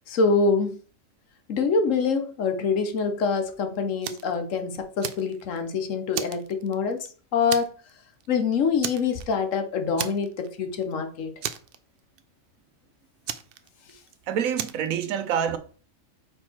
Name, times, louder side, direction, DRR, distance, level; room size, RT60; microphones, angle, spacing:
voice 1, 0.1-0.8 1.5-7.1 7.3-7.7 8.3-11.3, left 5 dB, 70° left, 1.2 m, -25 dB
Fire, 4.0-4.3 4.7-5.7 6.1-7.1 7.5-7.9 8.2-8.3 8.8-9.5 10.0-10.5 10.8-10.9 11.4-12.2 13.3-14.1 14.5-14.9, right 9 dB, 65° right, 0.6 m, -34 dB
voice 2, 14.3-15.6, right 8 dB, 80° right, 1.1 m, -26 dB
5.3 x 4.6 x 4.3 m
omnidirectional pair, 1.4 m